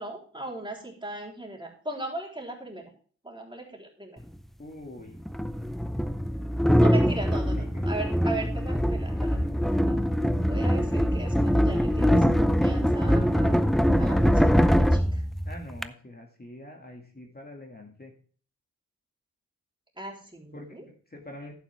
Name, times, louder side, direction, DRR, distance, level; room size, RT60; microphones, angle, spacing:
voice 1, 0.0-2.9 3.2-4.2 6.8-10.0 10.5-15.2 20.0-20.8, right 2 dB, 15° right, -1 dB, 3.7 m, -38 dB
sound 1, 4.2-4.3 5.3-15.9, equal, ahead, 0.6 m, -23 dB
voice 2, 4.6-5.2 7.3-7.9 15.5-18.1 20.5-21.5, left 1 dB, 30° left, 1 dB, 2.2 m, -44 dB
11.5 x 9.0 x 3.4 m, 0.43 s
cardioid pair, 55°, 33 cm